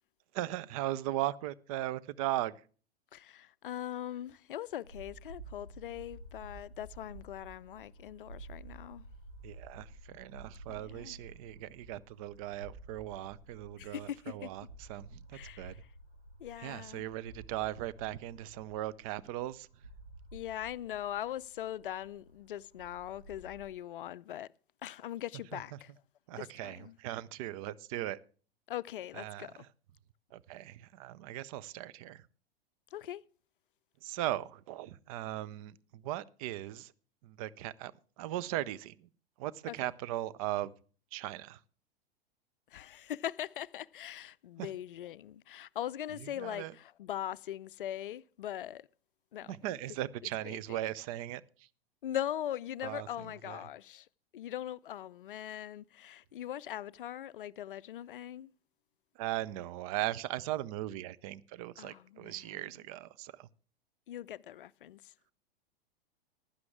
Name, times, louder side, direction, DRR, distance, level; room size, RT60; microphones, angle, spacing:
voice 1, 0.3-2.5 9.4-15.8 16.6-19.7 26.3-28.2 29.2-29.5 30.3-32.3 34.0-36.9 37.2-39.1 39.4-40.7 41.1-41.6 44.6-44.7 46.4-46.7 49.4-51.7 52.8-53.1 53.5-53.6 59.2-63.5, right 14 dB, 35° right, 0.6 m, -38 dB
voice 2, 3.1-9.0 10.8-11.2 13.8-14.5 15.3-15.9 16.4-17.1 20.3-24.5 24.8-25.9 26.3-26.9 28.7-29.7 32.9-33.3 39.7-39.8 42.7-48.9 49.3-49.5 50.4-50.8 52.0-54.1 54.3-58.5 61.8-62.6 64.1-65.1, left 11 dB, 60° left, 0.5 m, -41 dB
sound 1, 4.8-23.7, right 2 dB, 85° right, 3.1 m, -52 dB
15.5 x 11.5 x 3.5 m
figure-of-eight pair, 95°, 30 cm